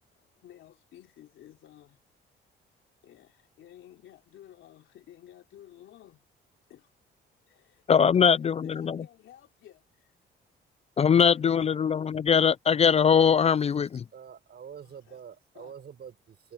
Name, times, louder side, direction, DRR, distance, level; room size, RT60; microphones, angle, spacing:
voice 1, 0.2-2.0 3.0-6.3 6.7-6.9 7.5-10.2 11.0-11.7 14.8-15.2 15.6-15.7, left 12 dB, 80° left, 3.3 m, -53 dB
voice 2, 7.9-9.0 11.0-14.0, left 7 dB, 30° left, 0.3 m, -22 dB
voice 3, 14.1-16.5, right 8 dB, 55° right, 6.9 m, -46 dB
cardioid pair, 90°, 20 cm